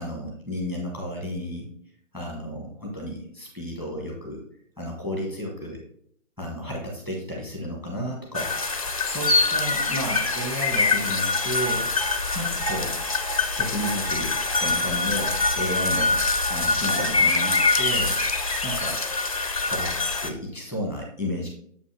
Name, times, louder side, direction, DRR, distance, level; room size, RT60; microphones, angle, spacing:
voice 1, 0.0-1.7 2.1-4.4 4.8-5.8 6.4-8.5 9.0-11.9 12.3-12.9 13.6-16.2 16.5-18.2 18.6-19.0 19.6-19.9 20.2-21.5, equal, 5° right, -1 dB, 1.0 m, -32 dB
sound 1, 8.3-20.3, left 3 dB, 30° left, 0.4 m, -24 dB
7.3 x 5.3 x 3.2 m, 0.67 s
hypercardioid pair, 155°, 39 cm